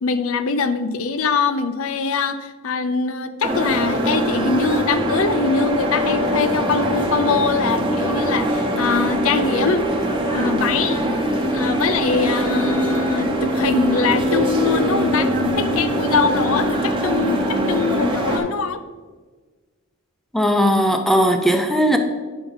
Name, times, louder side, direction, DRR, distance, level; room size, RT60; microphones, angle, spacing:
voice 1, 0.0-9.9 10.3-11.2 11.5-18.8, left 4 dB, 65° left, 11 dB, 0.5 m, -23 dB
sound 1, 3.4-18.4, equal, 25° right, 1.0 m, -22 dB
voice 2, 20.3-22.0, equal, ahead, 5 dB, 0.5 m, -17 dB
9.3 x 5.8 x 3.9 m, 1.4 s
head